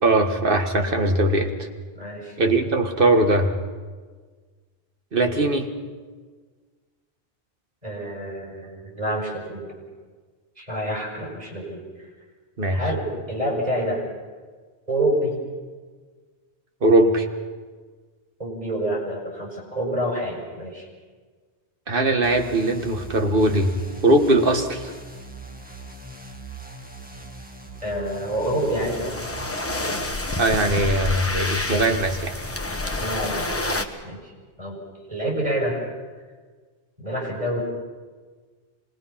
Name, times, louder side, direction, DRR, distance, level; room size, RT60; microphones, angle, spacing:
voice 1, 0.0-1.7 2.4-3.5 5.1-5.7 12.6-12.8 16.8-17.3 21.9-23.7 24.0-24.9 30.4-32.4, right 2 dB, 55° right, 5 dB, 1.7 m, -20 dB
voice 2, 1.9-2.4 7.8-9.7 10.6-11.8 12.7-14.0 14.9-15.3 18.4-20.9 27.8-29.2 33.0-34.3 34.6-34.8 35.1-35.8 37.0-37.6, right 1 dB, 35° right, -2 dB, 6.5 m, -27 dB
sound 1, 22.2-30.1, right 3 dB, 10° right, 1.5 m, -41 dB
sound 2, 28.6-33.8, left 2 dB, 15° left, 1.1 m, -28 dB
25.5 x 20.5 x 5.8 m, 1.5 s
omnidirectional pair, 1.1 m